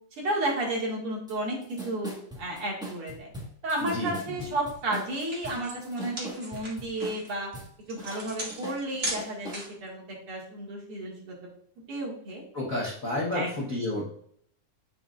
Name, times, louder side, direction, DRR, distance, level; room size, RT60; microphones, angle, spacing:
voice 1, 0.2-1.6 1.8-3.3 3.6-7.5 7.9-11.3 11.9-12.4 13.3-13.5, right 1 dB, 50° right, -3 dB, 2.7 m, -32 dB
sound 1, 1.3-1.4 1.6-7.7 8.0-9.6, right 1 dB, 5° right, 0.6 m, -41 dB
voice 2, 3.8-4.5 12.5-14.1, left 1 dB, 80° left, -5 dB, 0.7 m, -31 dB
sound 2, 4.7-4.8 5.1-9.9, right 1 dB, 25° right, 2.0 m, -37 dB
9.9 x 6.0 x 2.5 m, 0.64 s
omnidirectional pair, 3.6 m